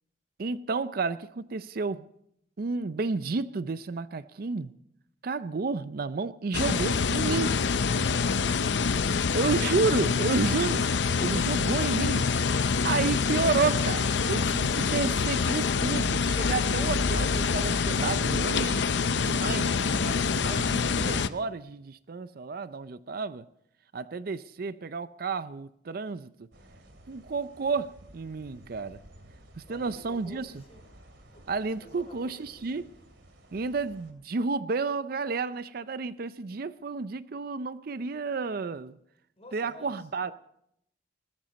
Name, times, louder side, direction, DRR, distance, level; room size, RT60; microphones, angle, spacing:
voice 1, 0.4-2.1 2.6-4.7 5.2-7.6 9.3-10.9 11.2-12.3 12.8-23.4 23.9-26.3 27.1-29.0 29.6-30.5 31.5-32.9 33.5-39.0 39.5-40.3, right 4 dB, 55° right, 0.5 m, -31 dB
sound 1, 6.5-21.3, left 5 dB, 70° left, 0.6 m, -26 dB
voice 2, 7.9-8.9 29.7-30.9 31.3-32.9 39.4-40.1, left 1 dB, 35° left, 3.9 m, -51 dB
sound 2, 26.5-34.1, right 1 dB, 75° right, 2.7 m, -54 dB
20.0 x 13.5 x 4.1 m
head